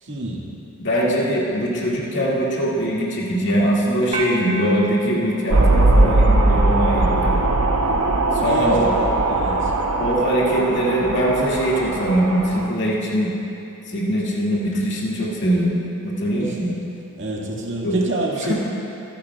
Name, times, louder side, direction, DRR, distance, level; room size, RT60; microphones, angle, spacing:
voice 1, 0.0-0.5 8.4-8.8 9.3-9.7 16.4-16.6 17.2-18.5, right 1 dB, 60° right, -3 dB, 1.9 m, -27 dB
voice 2, 0.8-7.4 8.4-8.9 10.0-13.3 13.9-16.8 17.8-18.0, equal, 55° left, -6 dB, 2.2 m, -22 dB
sound 1, 4.1-6.6, right 2 dB, 30° right, 0.9 m, -32 dB
sound 2, 5.5-12.7, right 2 dB, 85° right, 0.9 m, -19 dB
25.0 x 10.0 x 2.4 m, 2.9 s
head